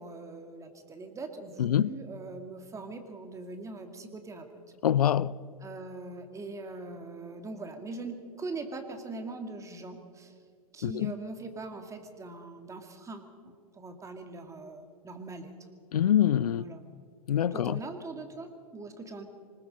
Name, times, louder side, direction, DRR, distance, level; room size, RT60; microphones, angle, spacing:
voice 1, 0.0-4.5 5.6-10.3 10.7-15.6 16.5-16.8 17.5-19.2, right 3 dB, 15° right, 2.3 m, -41 dB
voice 2, 1.6-1.9 4.8-5.3 10.8-11.1 15.9-16.6 17.3-17.8, left 10 dB, 75° left, 0.5 m, -25 dB
25.5 x 20.0 x 5.3 m
figure-of-eight pair, 105°, 19 cm